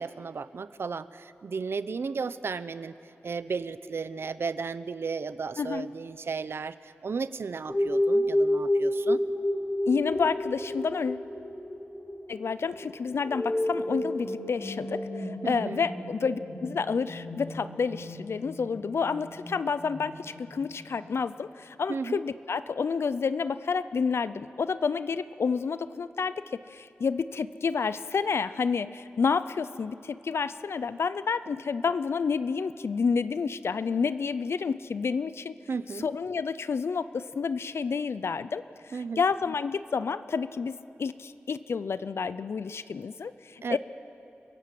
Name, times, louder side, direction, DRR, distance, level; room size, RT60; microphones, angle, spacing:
voice 1, 0.0-2.9 3.2-9.2 15.4-15.9 21.9-22.2 35.7-36.1 38.9-39.2 43.6-43.8, right 5 dB, 70° right, 15 dB, 0.7 m, -34 dB
voice 2, 5.6-5.9 9.9-11.3 12.3-26.4 26.7-35.5 36.0-43.8, left 5 dB, 75° left, 14 dB, 0.5 m, -29 dB
sound 1, 7.7-20.8, left 1 dB, 25° left, 4.3 m, -31 dB
29.5 x 17.0 x 7.6 m, 2.8 s
wide cardioid pair, 100°, 4 cm